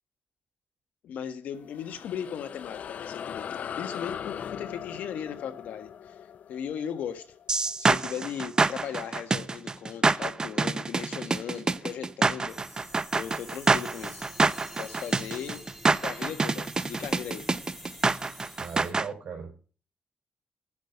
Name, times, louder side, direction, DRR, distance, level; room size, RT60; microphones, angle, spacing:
voice 1, 1.0-3.5 3.8-6.2 6.5-7.3 7.8-14.3 14.8-15.6 16.0-17.4, left 8 dB, 90° left, 1.5 m, -37 dB
sound 1, 1.5-8.4, left 8 dB, 65° left, 0.5 m, -40 dB
sound 2, 7.5-19.1, right 3 dB, 30° right, 0.6 m, -26 dB
sound 3, 12.5-18.9, equal, 5° right, 3.9 m, -47 dB
voice 2, 18.6-19.7, right 6 dB, 65° right, 4.1 m, -38 dB
10.5 x 6.7 x 8.3 m
cardioid pair, 95°, 3 cm